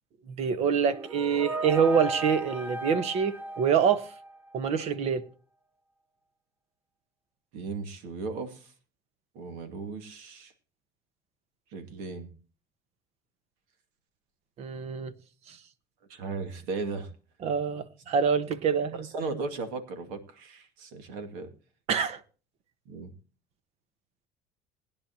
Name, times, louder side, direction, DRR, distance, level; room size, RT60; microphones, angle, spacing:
voice 1, 0.3-4.1 4.5-5.2 14.6-15.1 15.5-15.6 17.4-19.1 21.9-22.2, right 7 dB, 50° right, 1.2 m, -26 dB
sound 1, 0.6-4.6, right 2 dB, 15° right, 1.2 m, -36 dB
voice 2, 7.5-8.7 9.3-10.5 11.7-12.3 16.1-17.1 18.9-21.5 22.9-23.1, right 4 dB, 80° right, 2.3 m, -36 dB
20.0 x 10.0 x 2.9 m
cardioid pair, 130°, 14 cm